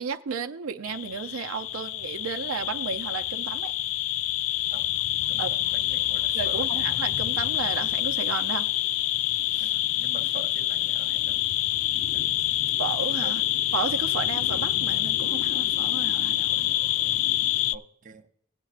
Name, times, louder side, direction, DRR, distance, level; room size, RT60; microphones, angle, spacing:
voice 1, 0.0-3.7 5.4-5.5 6.3-8.7 9.5-9.7 12.8-13.4 13.7-16.7, right 6 dB, 90° right, 0.6 m, -33 dB
sound 1, 0.8-17.8, left 14 dB, 75° left, 0.3 m, -26 dB
voice 2, 5.3-6.8 9.6-11.5 12.1-12.5 13.2-13.5 17.7-18.3, right 5 dB, 40° right, 0.6 m, -45 dB
16.5 x 8.5 x 2.4 m
head